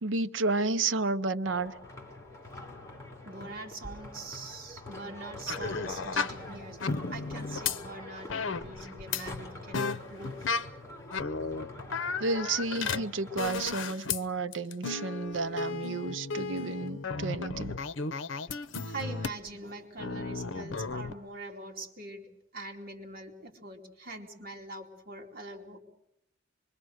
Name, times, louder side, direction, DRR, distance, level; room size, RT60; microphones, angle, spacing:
voice 1, 0.0-1.7 12.2-17.8, right 3 dB, 80° right, 11 dB, 0.8 m, -31 dB
sound 1, 1.4-13.6, left 1 dB, 15° left, 3.1 m, -45 dB
voice 2, 3.2-10.5 18.9-25.8, right 2 dB, 50° right, 1 dB, 2.8 m, -43 dB
sound 2, 5.5-6.4 6.8-7.8 8.3-9.3 9.7-10.7 11.1-14.2 14.5-19.5 20.0-21.1, left 4 dB, 90° left, 0.8 m, -34 dB
25.0 x 22.5 x 6.5 m, 0.82 s
head